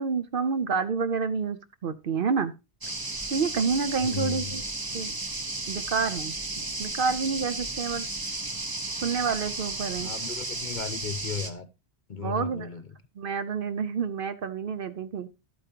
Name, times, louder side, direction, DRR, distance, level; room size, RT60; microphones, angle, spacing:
voice 1, 0.0-2.5 3.3-4.6 4.9-5.1 5.7-8.1 9.0-10.1 12.2-12.7 13.2-15.3, right 5 dB, 55° right, 0.8 m, -29 dB
sound 1, 2.8-11.5, right 2 dB, 20° right, 0.8 m, -34 dB
voice 2, 4.0-4.6 10.0-11.7 12.1-12.9, left 6 dB, 50° left, 0.9 m, -35 dB
12.0 x 8.7 x 2.8 m
omnidirectional pair, 1.2 m